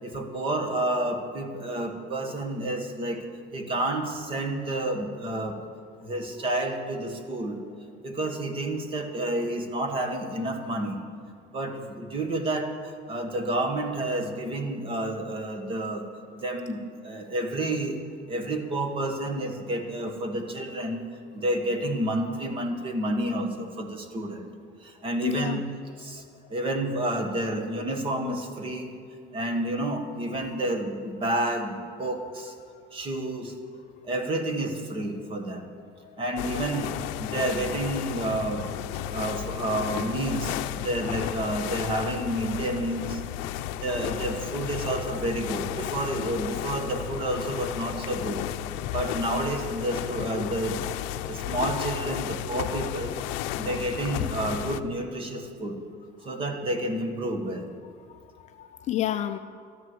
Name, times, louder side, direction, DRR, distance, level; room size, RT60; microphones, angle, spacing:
voice 1, 0.0-3.2 3.5-5.6 6.0-7.6 8.0-11.0 11.5-16.0 16.3-18.0 18.3-21.0 21.3-24.4 24.8-25.6 26.0-26.2 26.5-29.0 29.3-32.5 32.9-33.5 34.0-35.7 36.2-38.6 39.1-43.2 43.8-48.4 48.9-50.8 51.3-53.2 53.6-55.8 56.2-57.7, right 1 dB, 25° right, 5 dB, 1.4 m, -30 dB
voice 2, 25.2-25.6 28.8-29.0 29.2-29.3 36.0-36.2 58.1-59.4, left 12 dB, 35° left, 8 dB, 0.4 m, -31 dB
sound 1, 36.4-54.8, left 12 dB, 70° left, 0.6 m, -33 dB
13.0 x 11.0 x 7.8 m, 2.3 s
cardioid pair, 170°, 21 cm